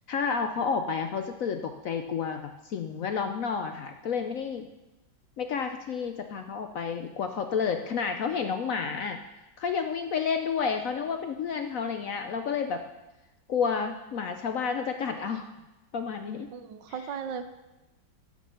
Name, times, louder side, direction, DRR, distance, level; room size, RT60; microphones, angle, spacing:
voice 1, 0.1-4.7 5.4-9.2 9.6-12.8 13.5-15.5 15.9-16.5 16.9-17.0, left 6 dB, 65° left, 6 dB, 0.9 m, -30 dB
voice 2, 16.5-17.4, right 7 dB, 80° right, 9 dB, 1.5 m, -36 dB
10.5 x 6.5 x 6.8 m, 1.0 s
omnidirectional pair, 2.0 m